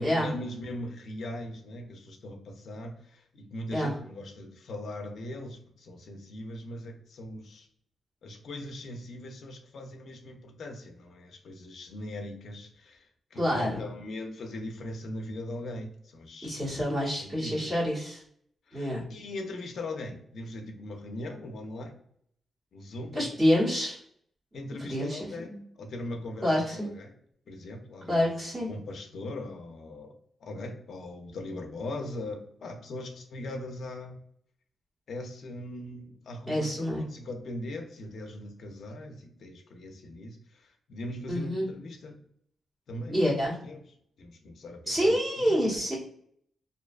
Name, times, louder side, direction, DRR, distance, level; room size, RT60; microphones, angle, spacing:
voice 1, 0.0-7.7 8.2-16.6 17.1-17.7 18.7-21.9 22.7-23.3 24.5-27.1 27.5-30.1 30.4-34.2 35.1-42.2 42.9-43.2 43.6-43.8 44.2-45.6, left 1 dB, 60° left, 3 dB, 0.4 m, -40 dB
voice 2, 13.3-13.8 16.4-18.2 18.7-19.0 23.1-24.0 24.8-25.6 26.4-26.9 28.1-28.7 36.5-37.0 41.3-41.7 43.1-43.6 44.9-46.0, equal, 20° right, -5 dB, 0.9 m, -27 dB
2.5 x 2.2 x 2.3 m, 0.65 s
wide cardioid pair, 170°, 0 cm